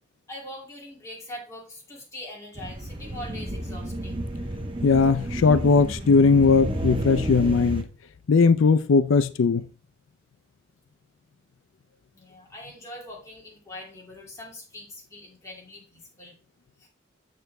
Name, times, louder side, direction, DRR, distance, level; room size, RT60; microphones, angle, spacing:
voice 1, 0.3-4.2 12.1-16.4 16.8-16.9, left 1 dB, 15° left, 2.7 m, -42 dB
sound 1, 2.6-7.8, right 1 dB, 25° right, 0.9 m, -31 dB
voice 2, 4.8-7.9 8.3-9.6, left 4 dB, 90° left, 0.5 m, -19 dB
7.9 x 6.7 x 3.4 m
head